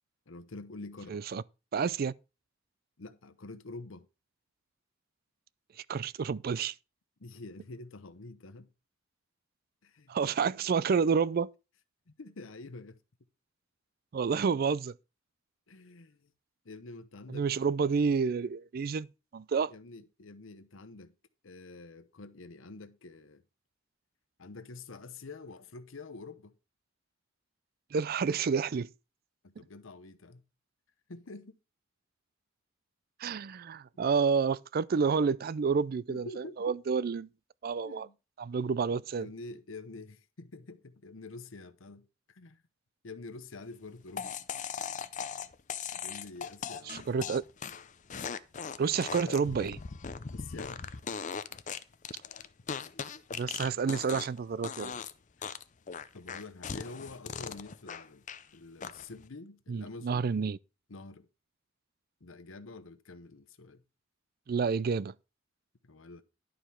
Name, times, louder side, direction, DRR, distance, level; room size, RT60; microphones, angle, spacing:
voice 1, 0.3-1.2 3.0-4.1 7.2-8.7 9.8-10.2 12.1-13.0 15.7-16.3 16.6-17.5 19.6-21.1 21.4-23.4 24.4-26.5 29.4-30.4 31.1-31.6 36.1-36.7 37.8-38.2 39.2-42.6 43.0-44.3 45.9-47.1 49.2-49.5 50.3-50.9 55.4-55.6 56.1-58.3 58.5-60.3 60.9-61.3 62.2-63.8 65.8-66.2, left 3 dB, 90° left, 0.9 m, -47 dB
voice 2, 1.1-1.4 1.7-2.1 5.9-6.8 10.1-11.5 14.1-14.9 17.3-19.1 19.3-19.7 27.9-28.9 33.2-37.3 37.6-38.1 38.4-39.3 46.9-47.4 48.8-49.8 53.3-54.9 59.7-60.6 64.5-65.1, right 5 dB, 50° right, 0.4 m, -29 dB
sound 1, 44.2-54.4 54.6-55.1 55.4-58.4 58.8-59.2, left 6 dB, 40° left, 0.6 m, -39 dB
11.5 x 5.0 x 5.7 m
head